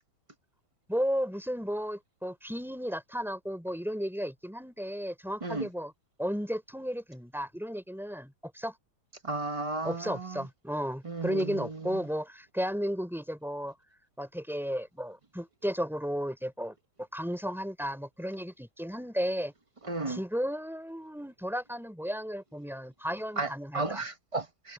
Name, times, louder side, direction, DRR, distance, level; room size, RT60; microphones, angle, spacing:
voice 1, 0.9-5.9 6.2-8.7 9.8-13.7 14.2-16.7 17.1-19.5 20.1-24.0, equal, ahead, 4.8 m, -34 dB
voice 2, 9.2-10.4 11.0-11.9 19.8-20.2 23.4-24.7, right 3 dB, 60° right, 0.3 m, -34 dB
omnidirectional pair, 2.3 m